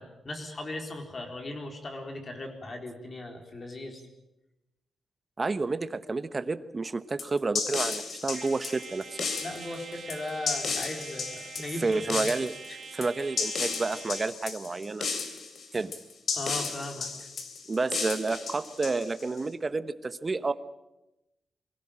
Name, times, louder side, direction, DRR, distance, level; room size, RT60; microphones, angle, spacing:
voice 1, 0.0-4.0 9.4-12.2 16.3-17.1, left 2 dB, 35° left, 4 dB, 4.2 m, -38 dB
voice 2, 5.4-9.3 11.8-12.5 12.9-15.1 15.7-15.9 17.7-20.5, right 3 dB, 25° right, 13 dB, 1.0 m, -30 dB
sound 1, 7.2-19.4, left 5 dB, 60° left, 3.2 m, -34 dB
Trumpet, 8.3-14.4, right 5 dB, 50° right, 1.6 m, -45 dB
24.5 x 16.5 x 8.8 m, 0.92 s
wide cardioid pair, 130°, 0 cm